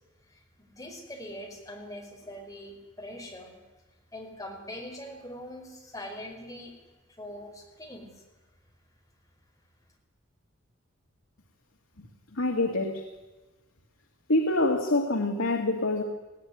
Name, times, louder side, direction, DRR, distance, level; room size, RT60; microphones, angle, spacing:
voice 1, 0.3-3.5 4.1-6.7 7.2-8.2, left 1 dB, 15° left, 1 dB, 5.0 m, -42 dB
voice 2, 12.0-13.1 14.3-16.0, left 2 dB, 80° left, 3 dB, 2.1 m, -26 dB
19.5 x 17.0 x 9.6 m, 1.2 s
head